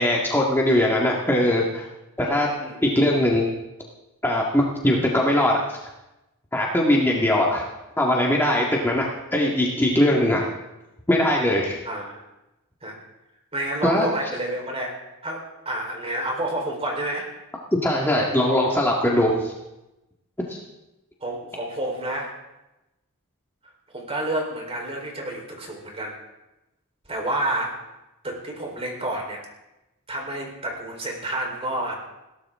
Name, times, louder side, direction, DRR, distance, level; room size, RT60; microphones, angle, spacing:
voice 1, 0.0-1.9 2.2-2.5 2.8-3.5 4.2-5.5 6.5-7.7 8.0-10.5 11.1-11.8 13.8-14.1 17.8-19.5 20.5-20.6, left 1 dB, 10° left, -3 dB, 1.9 m, -21 dB
voice 2, 2.2-2.8 11.8-12.2 12.8-12.9 13.5-15.0 15.2-17.3 21.2-22.3 23.9-26.2 27.1-27.8 28.2-29.4 30.1-31.9, right 1 dB, 25° right, 0 dB, 4.1 m, -29 dB
21.0 x 17.0 x 3.7 m, 0.98 s
head